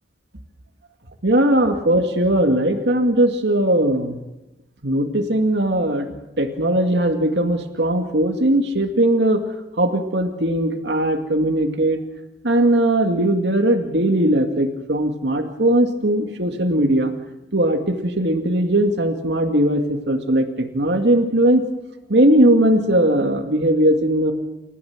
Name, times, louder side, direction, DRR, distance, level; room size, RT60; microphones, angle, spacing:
voice 1, 1.2-4.2 4.8-6.1 6.4-9.4 9.8-12.0 12.4-17.1 17.5-21.6 22.1-24.3, right 1 dB, 80° right, 5 dB, 2.3 m, -19 dB
29.5 x 15.0 x 7.5 m, 0.98 s
head